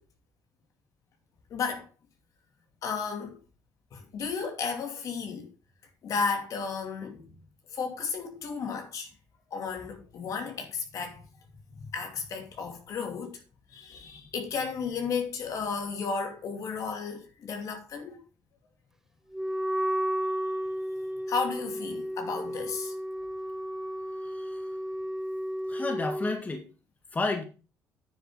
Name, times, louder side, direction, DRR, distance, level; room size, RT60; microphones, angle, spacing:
voice 1, 1.5-1.9 2.8-3.4 3.9-5.5 6.0-7.3 7.7-9.1 9.5-11.2 11.8-13.4 13.7-18.2 21.3-22.9, left 5 dB, 60° left, 2.6 m, -33 dB
Wind instrument woodwind instrument, 19.3-26.4, equal, 5° right, 0.4 m, -33 dB
voice 2, 24.2-24.7 25.7-26.7 27.1-27.4, left 3 dB, 25° left, 1.9 m, -31 dB
9.9 x 7.0 x 3.8 m
cardioid pair, 100°, 7 cm